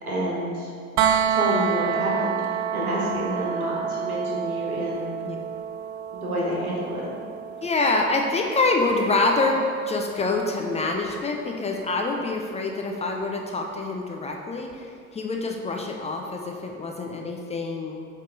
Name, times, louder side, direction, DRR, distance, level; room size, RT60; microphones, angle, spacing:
voice 1, 0.1-0.7 1.3-5.1 6.1-7.1, equal, 85° right, -5 dB, 1.4 m, -28 dB
sound 1, 1.0-12.8 14.7-14.8, right 8 dB, 50° right, 0.5 m, -30 dB
voice 2, 7.6-9.6 9.9-14.9 15.1-18.0, left 3 dB, 15° left, 1 dB, 0.5 m, -26 dB
7.7 x 3.6 x 3.9 m, 2.3 s
figure-of-eight pair, 65°, 42 cm